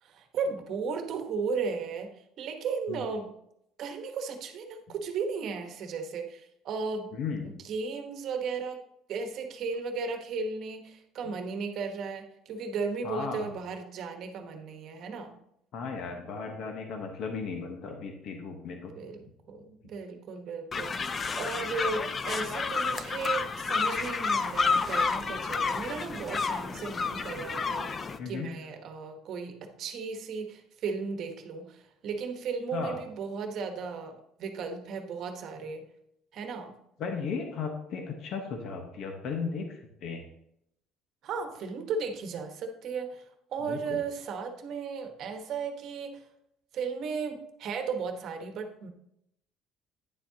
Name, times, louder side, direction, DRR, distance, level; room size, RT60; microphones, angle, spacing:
voice 1, 0.0-2.1 2.4-3.3 3.8-7.1 7.4-8.8 9.1-15.4 18.9-35.9 36.3-36.8 41.2-43.2 43.5-46.2 46.7-48.9, right 5 dB, 50° right, 5 dB, 1.1 m, -35 dB
voice 2, 7.1-7.5 11.2-11.3 13.0-13.5 15.7-18.9 28.2-28.5 32.7-33.0 37.0-40.2 43.7-44.0, left 5 dB, 55° left, 3 dB, 1.1 m, -35 dB
sound 1, 20.7-28.2, left 4 dB, 25° left, 0.4 m, -30 dB
9.8 x 7.2 x 2.8 m, 0.76 s
cardioid pair, 150°, 0 cm